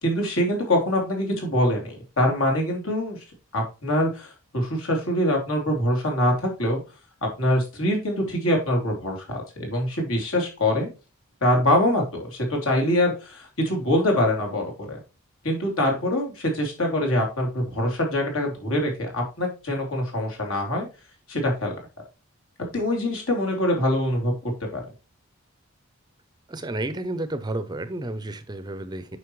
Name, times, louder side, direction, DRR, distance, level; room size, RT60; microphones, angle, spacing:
voice 1, 0.0-3.2 3.5-6.8 7.4-10.9 11.4-15.0 15.4-20.9 21.3-21.7 22.6-24.8, left 1 dB, 70° left, 3.3 m, -24 dB
voice 2, 26.5-29.2, right 2 dB, 20° right, 0.5 m, -31 dB
9.3 x 5.6 x 3.1 m
head